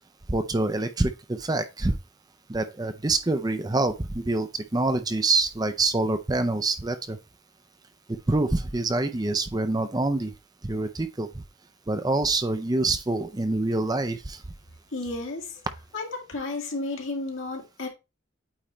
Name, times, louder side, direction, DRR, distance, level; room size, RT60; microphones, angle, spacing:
voice 1, 0.3-2.0 2.5-7.2 8.3-10.3 10.6-11.4 11.9-14.4, right 2 dB, 20° right, 0.5 m, -26 dB
voice 2, 14.9-15.6 15.9-17.9, left 2 dB, 75° left, 2.1 m, -32 dB
8.8 x 3.2 x 4.3 m
head